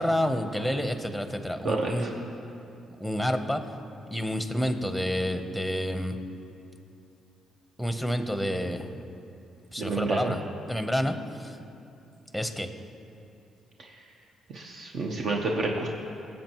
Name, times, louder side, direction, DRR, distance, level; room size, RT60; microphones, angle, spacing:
voice 1, 0.0-2.1 3.0-3.6 4.1-6.2 7.8-8.9 9.7-10.4 10.7-11.6 12.3-12.7, equal, ahead, 7 dB, 0.9 m, -29 dB
voice 2, 1.6-2.1 9.8-10.3 14.5-15.9, right 3 dB, 60° right, 0 dB, 0.9 m, -29 dB
20.0 x 7.6 x 3.0 m, 2.7 s
cardioid pair, 90°, 0 cm